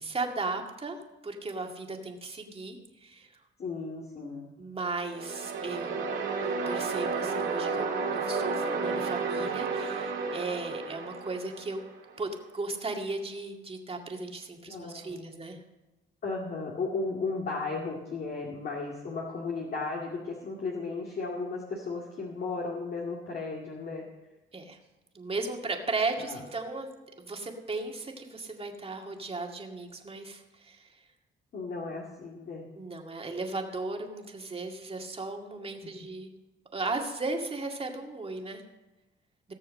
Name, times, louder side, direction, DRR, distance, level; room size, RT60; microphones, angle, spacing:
voice 1, 0.0-3.3 4.6-11.8 12.2-15.6 24.5-24.8 25.1-26.9 27.2-31.1 32.8-36.3 36.7-38.6, right 3 dB, 30° right, 2 dB, 2.1 m, -36 dB
voice 2, 3.6-4.5 14.7-15.4 16.2-24.0 26.2-26.4 31.5-32.7, left 3 dB, 50° left, -2 dB, 2.2 m, -35 dB
sound 1, 5.0-12.1, right 4 dB, 75° right, 2.5 m, -32 dB
17.5 x 6.7 x 6.4 m, 1.1 s
cardioid pair, 90°, 20 cm